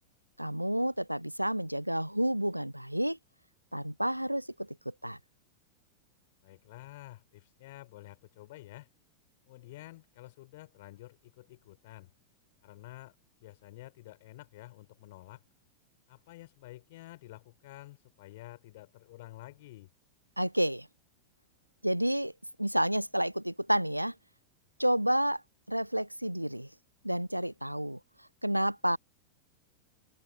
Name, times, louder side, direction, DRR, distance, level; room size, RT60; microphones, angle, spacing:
voice 1, 0.4-3.2 3.7-5.2 20.4-20.9 21.8-22.3 22.6-24.1 24.8-25.4 25.7-26.7 27.0-28.0 28.4-29.0, equal, 90° right, 0.7 m, -30 dB
voice 2, 6.4-8.9 9.5-12.1 12.6-13.2 13.4-15.4 16.1-19.9, left 18 dB, 50° left, 5.9 m, -50 dB
figure-of-eight pair, 90°, 0 cm